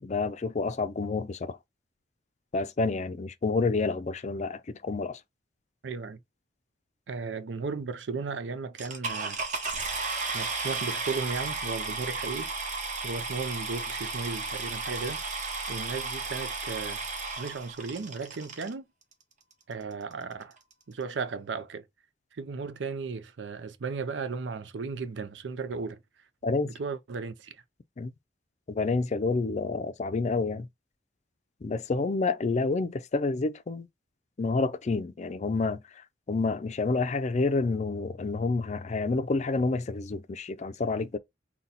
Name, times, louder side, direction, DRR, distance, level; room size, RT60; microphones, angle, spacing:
voice 1, 0.0-1.6 2.5-5.2 26.4-26.7 28.0-28.1 28.7-30.7 31.6-33.9 34.4-35.8 36.3-41.2, left 3 dB, 40° left, 0.4 m, -29 dB
voice 2, 5.8-6.2 7.1-9.4 10.3-12.5 13.0-15.2 15.7-17.1 17.4-18.9 19.7-20.6 20.9-21.8 22.3-26.0 26.6-27.6, right 4 dB, 90° right, 0.5 m, -35 dB
sound 1, 8.8-18.7 19.5-19.6 20.1-20.2 20.4-20.7, right 3 dB, 45° right, 1.1 m, -34 dB
4.0 x 2.2 x 4.0 m
head